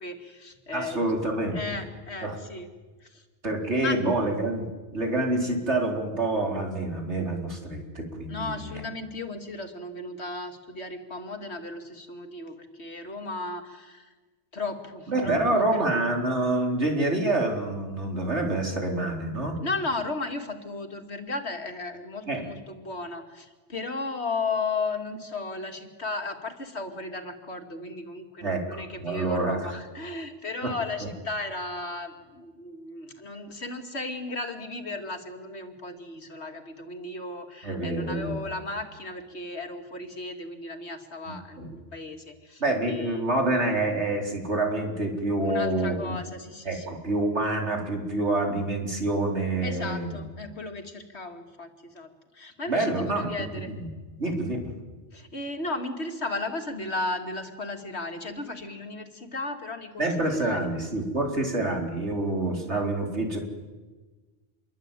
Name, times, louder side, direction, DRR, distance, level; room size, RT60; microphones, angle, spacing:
voice 1, 0.0-1.1 1.5-2.7 3.0-3.2 3.8-4.2 8.3-14.1 14.5-15.8 19.6-41.6 41.9-42.6 42.9-43.2 45.4-46.9 49.6-53.7 55.1-60.6, left 3 dB, 70° left, 5 dB, 2.8 m, -35 dB
voice 2, 0.7-1.6 2.2-2.4 3.4-8.8 15.1-19.6 22.3-22.4 28.4-29.7 30.6-30.7 31.0-31.1 37.6-38.4 41.3-41.7 42.6-46.0 46.6-50.2 52.7-53.9 54.2-54.7 60.0-63.4, right 2 dB, 80° right, 2 dB, 4.6 m, -27 dB
27.5 x 23.0 x 9.2 m, 1.3 s
omnidirectional pair, 1.2 m